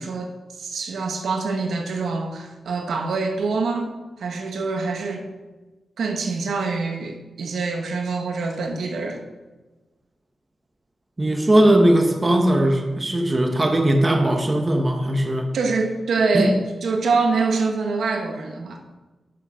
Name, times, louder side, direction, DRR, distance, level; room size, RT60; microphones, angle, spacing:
voice 1, 0.0-3.9 4.2-5.3 6.0-9.2 15.5-18.8, right 4 dB, 85° right, 4 dB, 1.2 m, -25 dB
voice 2, 11.2-15.5 16.3-16.5, right 1 dB, 25° right, 4 dB, 1.2 m, -19 dB
10.0 x 6.5 x 5.6 m, 1.2 s
wide cardioid pair, 115°, 0 cm